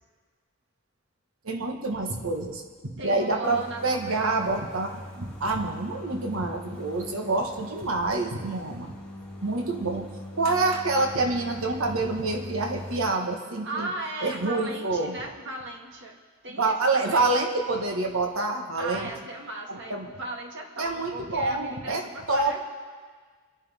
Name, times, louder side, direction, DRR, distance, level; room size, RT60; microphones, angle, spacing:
voice 1, 1.4-2.6 3.0-8.9 9.4-13.9 14.2-15.2 16.6-19.1 19.7-20.1 20.8-22.6, right 2 dB, 70° right, 3 dB, 1.4 m, -27 dB
voice 2, 3.0-4.4 13.6-17.3 18.7-22.6, right 2 dB, 55° right, 1 dB, 1.9 m, -37 dB
sound 1, 3.4-13.0, left 1 dB, 10° left, 2.3 m, -42 dB
26.5 x 11.0 x 3.5 m, 1.5 s
head